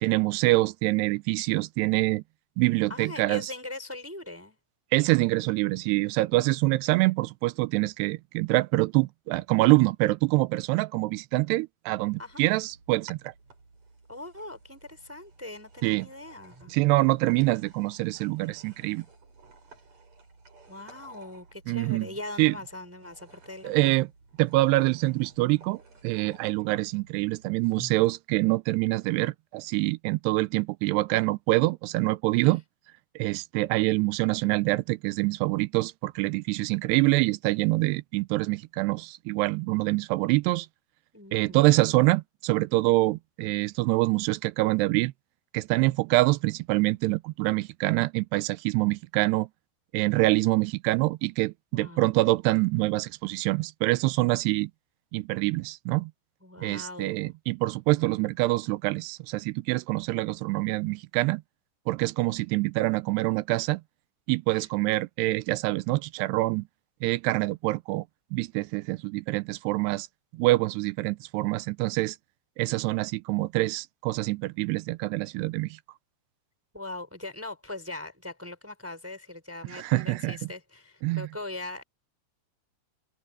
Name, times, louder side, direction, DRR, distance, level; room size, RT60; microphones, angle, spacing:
voice 1, 0.0-2.2 2.6-3.5 4.9-13.3 15.8-16.1 16.7-19.1 21.7-22.1 22.4-22.5 23.6-24.1 24.4-32.6 33.2-40.7 41.3-45.1 45.5-49.5 49.9-54.7 55.1-56.1 56.6-61.4 61.9-63.8 64.3-66.7 67.0-68.0 68.3-70.1 70.3-72.2 72.6-75.8 79.7-80.4 81.0-81.3, right 21 dB, 85° right, 2.7 m, -25 dB
voice 2, 2.9-4.6 12.2-12.4 14.1-16.8 20.7-24.0 32.4-32.5 41.1-41.6 51.7-52.0 56.4-57.3 64.5-64.7 72.6-72.8 76.7-81.8, left 2 dB, 5° right, 5.1 m, -41 dB
sound 1, 12.1-28.1, right 3 dB, 40° right, 7.6 m, -54 dB
omnidirectional pair, 4.8 m